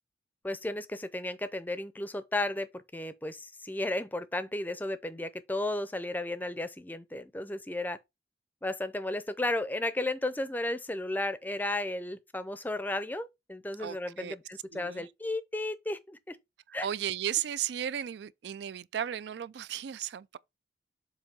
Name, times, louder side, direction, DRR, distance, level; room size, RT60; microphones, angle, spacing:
voice 1, 0.4-8.0 8.6-16.4 16.7-16.9, left 1 dB, 10° left, 0.5 m, -34 dB
voice 2, 13.8-14.4 14.7-15.1 16.7-20.4, right 10 dB, 70° right, 0.3 m, -35 dB
7.3 x 2.7 x 5.2 m
head